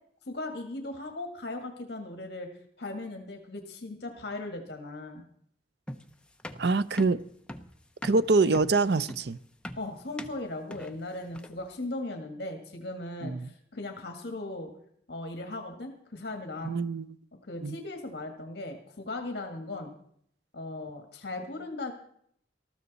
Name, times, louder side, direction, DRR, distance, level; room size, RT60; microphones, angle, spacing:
voice 1, 0.3-2.5 2.8-5.2 9.8-14.7 15.1-16.8 17.5-19.9 20.5-21.9, left 2 dB, 65° left, 1.7 m, -38 dB
sound 1, 5.9-11.7, left 1 dB, 5° left, 0.7 m, -42 dB
voice 2, 6.6-7.2 8.0-9.4 13.2-13.5 16.6-17.1 17.6-17.8, right 3 dB, 60° right, 0.6 m, -25 dB
19.5 x 13.5 x 4.1 m
head